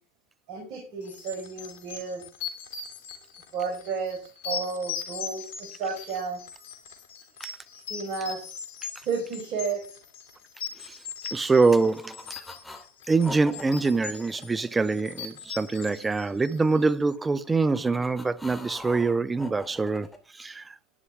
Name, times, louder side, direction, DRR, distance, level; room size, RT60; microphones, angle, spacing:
voice 1, 0.5-2.2 3.5-6.4 7.7-8.6 9.0-10.0, right 5 dB, 55° right, 4.7 m, -32 dB
sound 1, 1.1-16.9, left 7 dB, 75° left, 2.8 m, -40 dB
voice 2, 11.3-12.2 13.1-20.1 20.4-20.6, right 3 dB, 15° right, 0.7 m, -24 dB
sound 2, 11.4-12.9 13.2-15.4 17.2-20.2, left 2 dB, 10° left, 2.6 m, -43 dB
12.5 x 9.8 x 3.5 m
hypercardioid pair, 95°, 0 cm